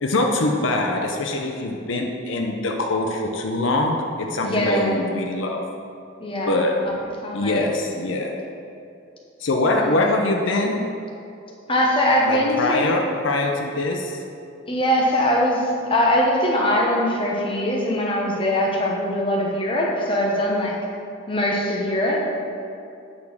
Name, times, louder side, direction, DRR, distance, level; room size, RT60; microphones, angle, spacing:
voice 1, 0.0-5.6 6.5-6.8 7.3-8.3 9.4-10.8 12.3-14.2, left 2 dB, 75° left, 2 dB, 0.7 m, -23 dB
voice 2, 4.4-5.0 6.2-6.5 7.2-7.6 9.7-9.9 11.7-13.0 14.7-20.8 21.3-22.4, left 1 dB, 25° left, -2 dB, 1.1 m, -22 dB
8.5 x 4.3 x 6.4 m, 2.6 s
head